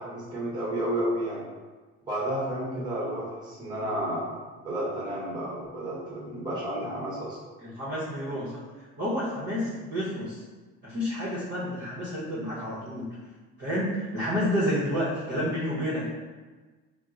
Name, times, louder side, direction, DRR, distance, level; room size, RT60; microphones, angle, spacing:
voice 1, 0.0-1.4 2.0-4.3 4.6-7.4, right 1 dB, 15° right, -6 dB, 1.0 m, -31 dB
voice 2, 7.6-8.6 9.0-10.4 10.8-13.1 13.6-16.1, equal, 35° right, -8 dB, 0.8 m, -30 dB
2.9 x 2.0 x 3.6 m, 1.3 s
cardioid pair, 130°, 29 cm